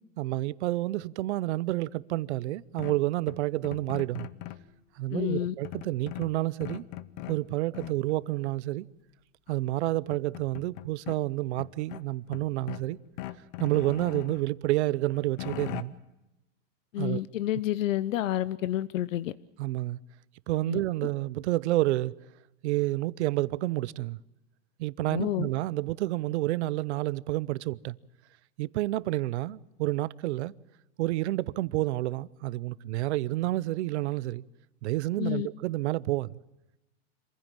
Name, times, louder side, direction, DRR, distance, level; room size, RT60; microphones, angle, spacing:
voice 1, 0.2-4.3 5.0-6.8 7.3-8.9 9.5-13.0 13.6-15.9 17.0-17.2 19.6-20.0 20.5-22.1 22.6-24.2 24.8-28.0 28.6-30.5 31.0-34.4 34.8-36.4, right 17 dB, 60° right, 0.7 m, -29 dB
sound 1, 2.8-4.7 5.6-7.4 7.7-8.2 9.5-9.6 9.9-11.2 11.6-12.9 13.2-14.4 14.9-15.8, left 15 dB, 40° left, 0.9 m, -40 dB
voice 2, 5.1-5.6 16.9-19.3 20.7-20.8 25.1-25.5 35.2-35.5, left 13 dB, 90° left, 0.9 m, -29 dB
26.5 x 15.5 x 7.5 m
supercardioid pair, 165°, 38 cm